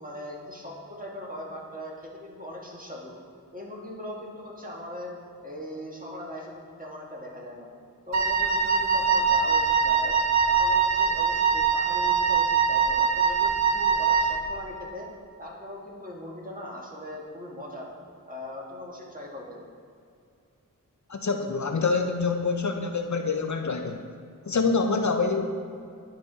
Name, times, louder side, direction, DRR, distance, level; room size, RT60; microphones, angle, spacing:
voice 1, 0.0-3.1 3.5-5.1 5.4-7.7 8.1-10.2 10.5-15.1 15.4-17.9 18.3-19.6, left 1 dB, 25° right, -3 dB, 1.6 m, -40 dB
Wind instrument woodwind instrument, 8.1-14.5, right 6 dB, 55° right, 0.5 m, -23 dB
voice 2, 21.1-24.0 24.5-25.5, left 4 dB, 60° left, 5 dB, 0.5 m, -26 dB
11.0 x 3.9 x 3.9 m, 2.4 s
wide cardioid pair, 40°, 33 cm